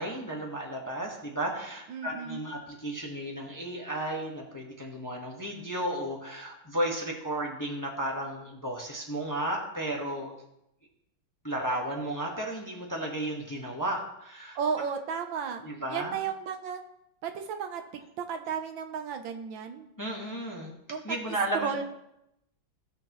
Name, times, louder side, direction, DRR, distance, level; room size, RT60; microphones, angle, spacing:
voice 1, 0.0-10.3 11.4-14.6 15.6-16.2 20.0-20.7 21.0-21.8, right 1 dB, 10° left, -1 dB, 1.1 m, -33 dB
voice 2, 1.9-2.4 14.5-16.8 17.2-19.9 20.9-21.8, right 6 dB, 75° right, 7 dB, 1.5 m, -34 dB
16.0 x 6.6 x 3.1 m, 0.83 s
omnidirectional pair, 2.2 m